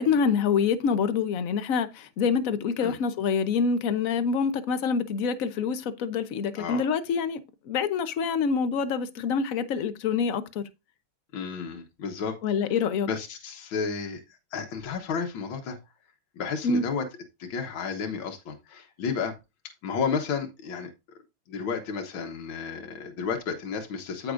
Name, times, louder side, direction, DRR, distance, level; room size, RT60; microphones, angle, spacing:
voice 1, 0.0-7.4 7.7-10.6 12.4-13.1 16.6-16.8, left 6 dB, 55° left, 0.9 m, -26 dB
voice 2, 6.6-6.9 11.3-12.4 13.1-14.2 14.5-15.8 16.4-17.0 17.4-19.3 19.8-20.9 21.5-24.3, left 5 dB, 75° left, 1.9 m, -32 dB
13.0 x 6.1 x 2.5 m
omnidirectional pair, 2.3 m